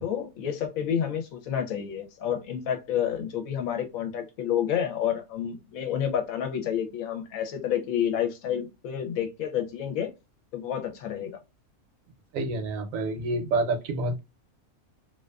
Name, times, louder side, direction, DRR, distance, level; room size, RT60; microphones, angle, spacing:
voice 1, 0.0-10.1 10.5-11.3, left 9 dB, 75° left, 1.0 m, -29 dB
voice 2, 12.3-14.2, right 2 dB, 70° right, 1.0 m, -28 dB
2.5 x 2.3 x 2.2 m
omnidirectional pair, 1.5 m